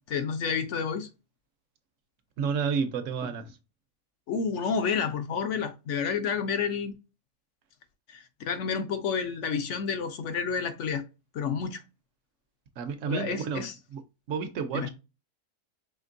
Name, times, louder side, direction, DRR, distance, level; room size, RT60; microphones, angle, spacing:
voice 1, 0.1-1.1 4.3-6.9 8.1-11.0 11.3-11.8 13.1-13.7 14.7-14.9, left 6 dB, 65° left, 0.9 m, -30 dB
voice 2, 2.4-3.6 12.8-14.0 14.3-14.9, right 6 dB, 70° right, 1.0 m, -31 dB
5.1 x 3.1 x 2.5 m
omnidirectional pair, 1.4 m